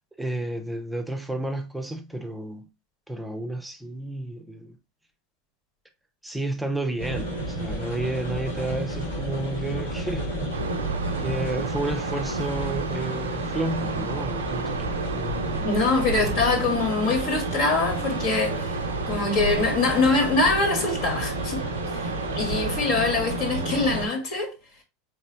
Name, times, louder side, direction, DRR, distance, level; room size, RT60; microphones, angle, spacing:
voice 1, 0.2-2.7 3.1-4.8 6.2-10.3 11.2-15.7 16.2-16.4, right 1 dB, 5° right, 0.7 m, -31 dB
sound 1, 7.0-24.1, right 1 dB, 85° left, 2.2 m, -31 dB
sound 2, 10.5-24.1, right 6 dB, 80° right, 0.4 m, -33 dB
voice 2, 15.6-18.7 19.1-21.6 22.0-24.5, left 3 dB, 50° left, 1.6 m, -24 dB
4.2 x 3.3 x 2.8 m
hypercardioid pair, 85°, 0 cm